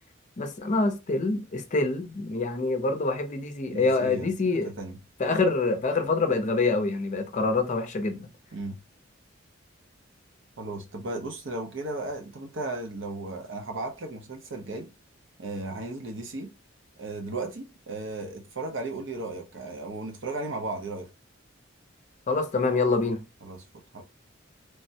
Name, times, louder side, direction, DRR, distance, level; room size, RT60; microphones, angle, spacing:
voice 1, 0.4-4.7 5.2-8.3 22.3-23.2, left 3 dB, 40° left, 0.5 m, -26 dB
voice 2, 3.7-4.3 4.6-5.0 8.5-8.8 10.6-14.9 15.4-16.5 17.0-21.1 23.4-24.0, right 2 dB, 65° right, 0.7 m, -35 dB
3.3 x 2.1 x 2.7 m
head